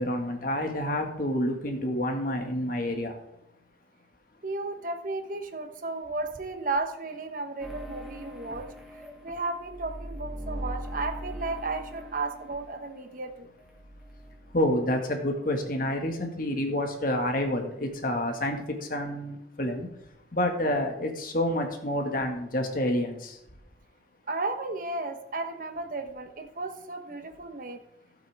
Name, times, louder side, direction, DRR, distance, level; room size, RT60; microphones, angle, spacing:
voice 1, 0.0-3.1 14.5-19.9 20.3-23.4, left 1 dB, 50° left, 3 dB, 1.8 m, -28 dB
voice 2, 4.4-8.7 8.9-13.5 24.3-27.8, right 3 dB, 50° right, 6 dB, 1.1 m, -34 dB
sound 1, 7.6-13.3 13.6-14.8, equal, ahead, 2.1 m, -41 dB
15.5 x 8.1 x 3.5 m, 0.84 s
head